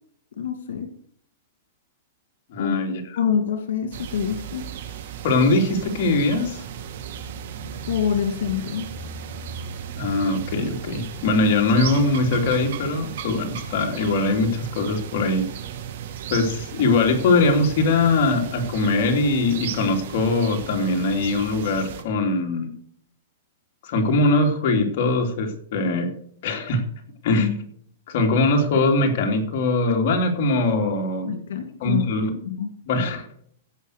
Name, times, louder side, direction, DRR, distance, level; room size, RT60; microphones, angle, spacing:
voice 1, 0.4-0.9 2.6-2.8 3.2-4.6 7.9-8.9 31.3-32.1 32.4-32.7, left 8 dB, 90° left, 6 dB, 2.0 m, -26 dB
voice 2, 2.5-3.2 5.2-6.6 10.0-15.5 16.3-22.7 23.8-26.1 26.4-26.8 27.2-27.6 28.1-31.3 31.8-32.3 32.9-33.3, left 2 dB, 50° left, 2 dB, 3.0 m, -21 dB
sound 1, 3.9-22.0, right 8 dB, 60° right, 2.2 m, -35 dB
16.0 x 5.8 x 6.5 m, 0.63 s
supercardioid pair, 165°, 0 cm